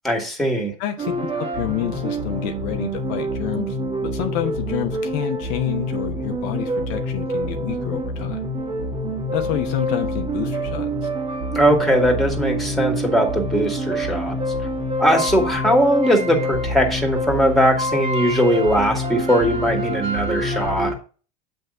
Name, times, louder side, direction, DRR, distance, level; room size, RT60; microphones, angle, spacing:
voice 1, 0.0-0.7 11.5-14.4 15.0-20.9, equal, ahead, 2 dB, 2.1 m, -20 dB
voice 2, 0.8-3.8 4.0-8.4 9.3-11.1, left 12 dB, 65° left, 5 dB, 0.9 m, -28 dB
sound 1, 1.0-20.9, right 1 dB, 30° right, 1.7 m, -26 dB
7.8 x 3.5 x 5.4 m, 0.38 s
hypercardioid pair, 100°, 19 cm